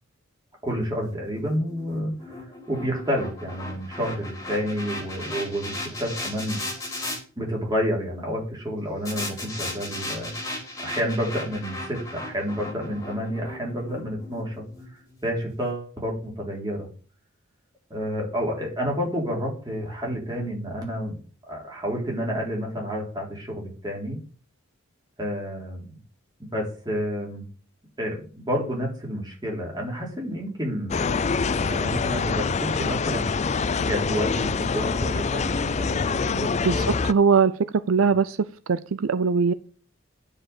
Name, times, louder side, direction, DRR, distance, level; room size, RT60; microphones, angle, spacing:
voice 1, 0.6-2.4 2.7-6.6 7.4-10.3 10.8-14.6 15.2-16.9 17.9-21.2 21.5-24.2 25.2-26.0 26.5-27.4 28.0-33.3 33.8-36.9, equal, 20° right, -1 dB, 3.9 m, -29 dB
sound 1, 1.0-7.2 9.1-15.3, left 1 dB, 15° left, 2.8 m, -36 dB
sound 2, 30.9-37.1, left 4 dB, 35° left, 0.4 m, -25 dB
voice 2, 36.6-37.5 37.9-38.4 38.7-39.5, right 5 dB, 80° right, 14 dB, 0.5 m, -21 dB
9.8 x 5.2 x 8.2 m, 0.40 s
head